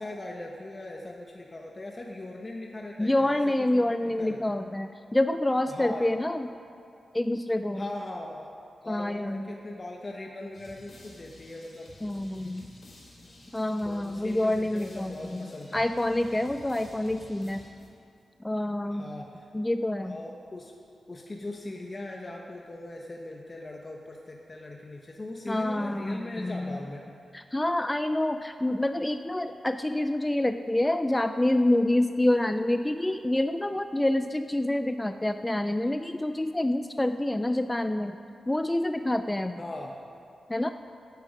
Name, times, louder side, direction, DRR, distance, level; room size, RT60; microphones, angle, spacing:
voice 1, 0.0-4.5 5.7-6.2 7.7-8.5 8.8-11.9 13.8-15.9 18.9-19.5 20.1-20.7 21.1-27.1 39.6-40.0, left 2 dB, 30° left, 0 dB, 1.0 m, -40 dB
voice 2, 3.0-6.5 7.1-7.9 8.9-9.5 12.0-12.7 13.5-15.5 15.7-17.6 18.4-19.1 19.5-20.2 25.5-26.8 27.3-38.1 38.5-39.6 40.5-40.7, left 1 dB, 10° left, 8 dB, 0.4 m, -27 dB
sound 1, 10.5-18.2, left 1 dB, 55° left, 3.9 m, -52 dB
17.0 x 9.3 x 5.2 m, 2.5 s
wide cardioid pair, 125°, 0 cm